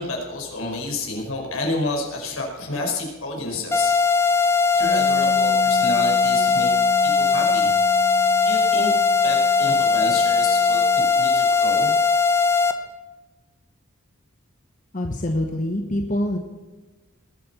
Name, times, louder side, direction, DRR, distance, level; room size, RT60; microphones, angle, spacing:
voice 1, 0.0-4.0 4.7-6.7 7.0-7.7 8.4-8.9 9.2-11.9, left 2 dB, 75° left, 0 dB, 5.2 m, -30 dB
sound 1, 3.7-12.7, left 5 dB, 10° left, 0.9 m, -19 dB
Bass guitar, 4.8-11.1, left 6 dB, 15° right, 2.7 m, -37 dB
voice 2, 14.9-16.4, left 1 dB, 35° left, 4 dB, 1.1 m, -25 dB
21.0 x 8.6 x 7.0 m, 1.3 s
head